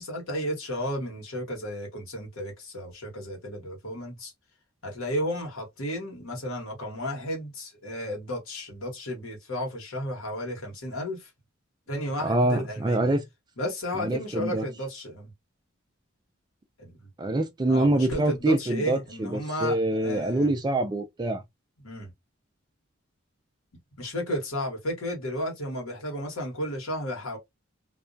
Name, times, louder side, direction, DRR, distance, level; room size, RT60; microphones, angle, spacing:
voice 1, 0.0-4.3 4.8-11.3 11.9-13.1 13.6-15.3 16.8-17.1 17.6-20.5 21.8-22.1 24.0-27.4, equal, 90° left, 1.1 m, -33 dB
voice 2, 12.2-13.2 14.0-14.6 17.2-21.4, right 2 dB, 20° right, 0.3 m, -25 dB
2.3 x 2.1 x 2.5 m
head